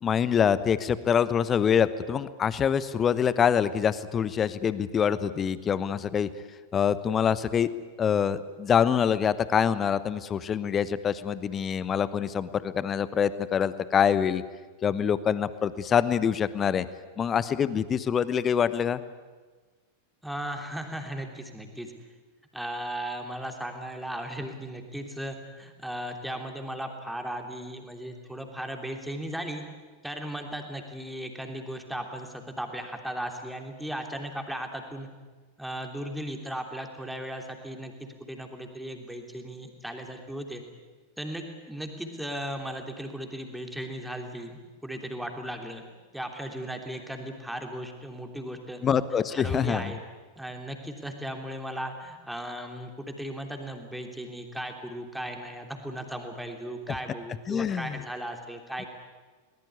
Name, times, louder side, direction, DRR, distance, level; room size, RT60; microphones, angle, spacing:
voice 1, 0.0-6.3 6.7-7.7 8.0-14.4 14.8-16.9 17.2-19.0 48.8-49.9 57.5-58.0, left 8 dB, 25° left, 16 dB, 1.0 m, -25 dB
voice 2, 20.2-21.9 22.5-29.6 30.0-35.1 35.6-40.6 41.2-45.9 46.1-48.8 49.3-50.0 50.4-58.9, right 1 dB, ahead, 4 dB, 3.2 m, -36 dB
22.0 x 19.5 x 9.6 m, 1.3 s
figure-of-eight pair, 90°, 0 cm